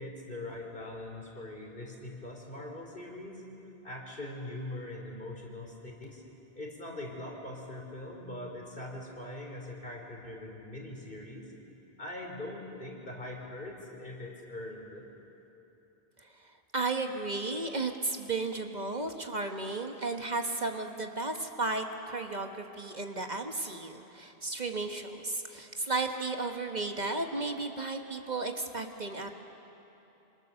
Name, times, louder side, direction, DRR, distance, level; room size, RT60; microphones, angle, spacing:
voice 1, 0.0-3.4 3.8-5.7 6.0-6.2 6.6-11.5 12.0-15.0, left 1 dB, 60° left, 0 dB, 4.0 m, -42 dB
voice 2, 16.2-29.3, right 3 dB, 45° right, 4 dB, 1.3 m, -34 dB
25.5 x 25.0 x 6.9 m, 3.0 s
omnidirectional pair, 1.0 m